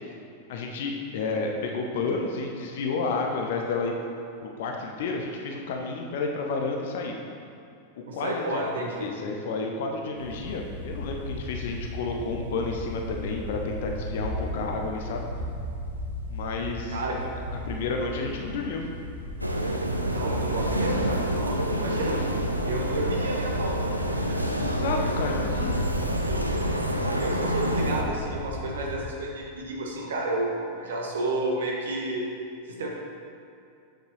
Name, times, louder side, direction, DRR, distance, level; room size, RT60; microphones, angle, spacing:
voice 1, 0.5-3.9 4.4-7.1 8.0-8.6 9.0-15.3 16.3-17.0 17.7-18.9 24.6-25.9, left 3 dB, 55° left, 2 dB, 0.7 m, -31 dB
voice 2, 8.1-9.1 16.9-17.2 20.1-22.2 22.6-24.7 25.0-25.2 26.3-26.6 27.2-32.3 32.7-32.9, right 1 dB, 65° right, -1 dB, 1.2 m, -31 dB
sound 1, 10.2-29.0, left 1 dB, 85° left, 1.1 m, -36 dB
sound 2, 19.4-28.0, right 1 dB, 85° right, 0.4 m, -28 dB
8.0 x 6.3 x 3.2 m, 2.5 s
figure-of-eight pair, 90°, 0 cm